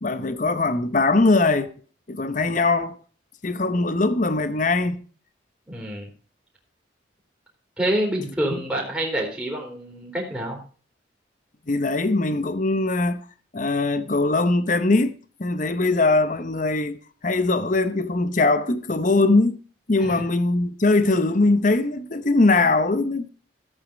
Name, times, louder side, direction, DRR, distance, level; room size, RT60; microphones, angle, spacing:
voice 1, 0.0-1.7 2.1-2.9 3.4-5.0 8.5-8.6 11.7-13.2 13.5-17.0 17.2-19.6 19.9-23.3, left 2 dB, 40° left, 0.8 m, -21 dB
voice 2, 5.7-6.1 7.8-10.6 20.0-20.1, right 1 dB, 10° right, 3.3 m, -27 dB
14.0 x 8.5 x 5.1 m
head